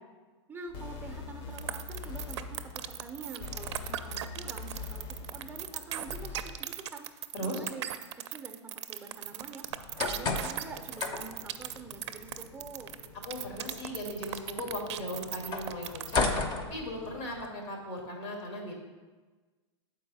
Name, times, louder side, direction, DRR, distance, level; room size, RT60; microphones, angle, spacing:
voice 1, 0.5-7.1 7.4-9.7 10.1-12.9, right 4 dB, 15° right, 4 dB, 0.5 m, -46 dB
sound 1, 0.7-6.6, left 4 dB, 55° left, 0.8 m, -43 dB
sound 2, 1.6-16.2, right 12 dB, 70° right, 0.4 m, -38 dB
sound 3, 9.7-17.5, left 3 dB, 30° left, 0.6 m, -36 dB
voice 2, 13.3-16.2 16.7-18.7, left 1 dB, 85° left, 0 dB, 1.9 m, -37 dB
7.0 x 4.6 x 4.1 m, 1.3 s
hypercardioid pair, 120°, 15 cm